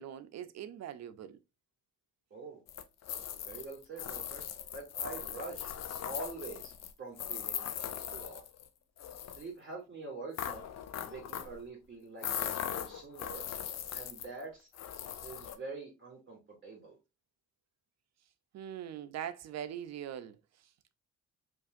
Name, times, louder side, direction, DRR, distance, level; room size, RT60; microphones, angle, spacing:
voice 1, 0.0-1.4 18.5-20.9, right 10 dB, 60° right, 0.5 m, -42 dB
voice 2, 2.3-2.6 3.4-4.4 4.7-5.7 6.0-6.7 7.0-7.7 8.1-8.4 9.4-10.7 11.0-13.4 13.9-14.7 15.2-17.0, right 3 dB, 40° right, 2.4 m, -45 dB
sound 1, 2.7-8.7 9.0-9.4 10.3-11.6 12.2-14.4 14.7-15.6, left 10 dB, 60° left, 0.6 m, -39 dB
5.3 x 2.6 x 2.5 m
cardioid pair, 90°, 30 cm